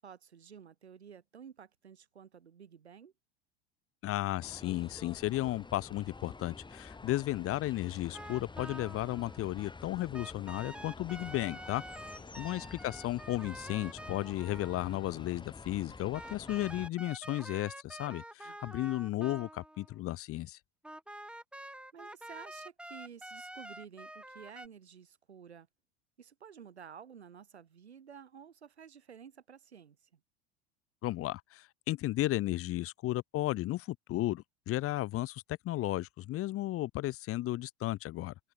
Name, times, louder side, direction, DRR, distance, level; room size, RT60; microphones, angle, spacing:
voice 1, 0.0-3.1 12.6-12.7 18.4-18.6 21.7-25.7 26.2-30.2, right 7 dB, 80° right, 7.0 m, -52 dB
voice 2, 4.0-11.8 12.4-20.6 31.0-38.3, left 16 dB, 45° left, 2.6 m, -34 dB
sound 1, 4.4-16.9, left 3 dB, 15° left, 8.0 m, -49 dB
sound 2, 8.1-9.6 10.1-15.1 16.1-20.0 20.8-24.7, right 1 dB, 5° right, 3.9 m, -47 dB
figure-of-eight pair, 80°, 32 cm